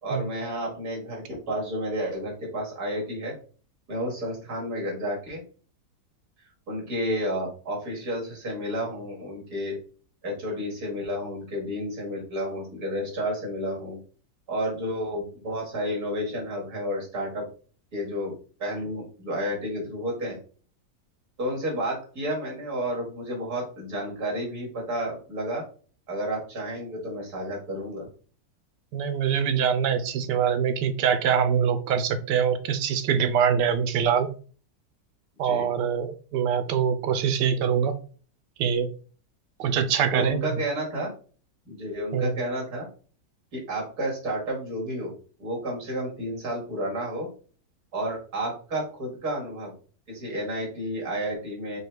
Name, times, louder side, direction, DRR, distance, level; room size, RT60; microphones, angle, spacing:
voice 1, 0.0-3.3 3.9-5.4 6.7-9.8 10.2-14.0 14.5-17.5 17.9-20.4 21.4-25.7 26.1-28.1 35.4-35.7 40.1-41.1 41.7-42.9 43.5-45.1 45.4-47.3 47.9-49.7 50.1-51.8, equal, 65° right, -2 dB, 2.6 m, -31 dB
voice 2, 28.9-34.3 35.4-37.9 38.6-38.9 39.6-40.4 42.1-42.3, right 7 dB, 80° right, 10 dB, 1.3 m, -24 dB
5.4 x 2.2 x 4.5 m, 0.40 s
omnidirectional pair, 1.8 m